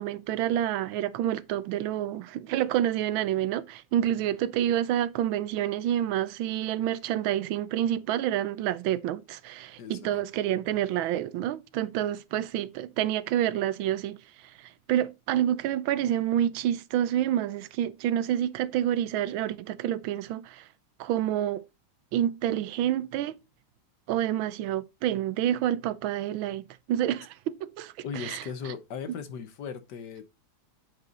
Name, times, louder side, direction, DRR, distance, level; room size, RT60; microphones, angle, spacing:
voice 1, 0.0-14.2 14.6-20.7 21.0-21.6 22.1-23.4 24.1-28.4, right 11 dB, 90° right, 1.4 m, -28 dB
voice 2, 9.8-10.2 28.0-30.2, left 6 dB, 65° left, 1.4 m, -38 dB
7.9 x 5.2 x 4.1 m
omnidirectional pair, 2.1 m